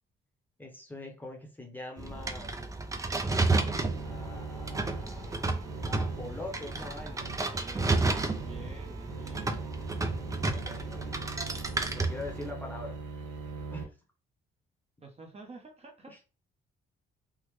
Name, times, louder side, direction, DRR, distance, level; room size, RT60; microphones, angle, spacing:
voice 1, 0.6-2.5 4.0-7.3 10.4-11.2 11.9-13.0 13.7-14.0 16.1-16.2, left 2 dB, 10° left, 1 dB, 0.9 m, -43 dB
sound 1, 2.0-12.5, right 3 dB, 15° right, 0.4 m, -32 dB
sound 2, 3.4-13.8, right 4 dB, 80° right, 1.1 m, -41 dB
voice 2, 7.5-9.6 15.0-16.1, right 3 dB, 30° right, 1 dB, 0.8 m, -49 dB
3.6 x 2.0 x 3.1 m, 0.34 s
cardioid pair, 90°, 20 cm